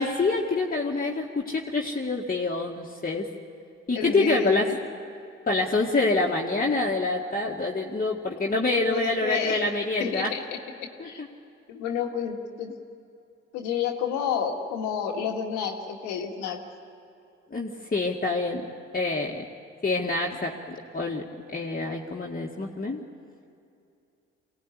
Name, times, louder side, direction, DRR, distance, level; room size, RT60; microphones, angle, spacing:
voice 1, 0.0-3.3 3.9-4.7 5.5-10.3 11.0-11.3 17.5-18.7 18.9-19.5 19.8-21.3 21.5-23.0, left 3 dB, 30° left, -3 dB, 2.1 m, -26 dB
voice 2, 4.0-4.8 8.9-9.7 10.0-10.4 11.0-11.2 11.7-12.7 13.5-16.6, left 7 dB, 85° left, 2 dB, 1.9 m, -30 dB
23.5 x 17.5 x 10.0 m, 2.6 s
hypercardioid pair, 45°, 30 cm